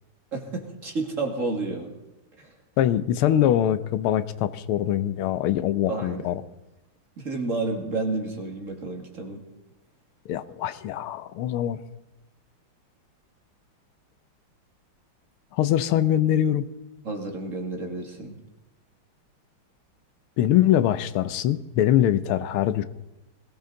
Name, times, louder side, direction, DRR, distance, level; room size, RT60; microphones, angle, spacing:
voice 1, 0.3-1.9 2.4-2.5 5.9-6.3 7.2-9.4 17.0-18.4, right 3 dB, 40° right, 2 dB, 2.3 m, -30 dB
voice 2, 2.8-6.4 10.3-11.8 15.5-16.7 20.4-22.8, left 11 dB, 85° left, 13 dB, 1.6 m, -23 dB
21.0 x 17.0 x 3.9 m, 0.95 s
omnidirectional pair, 2.3 m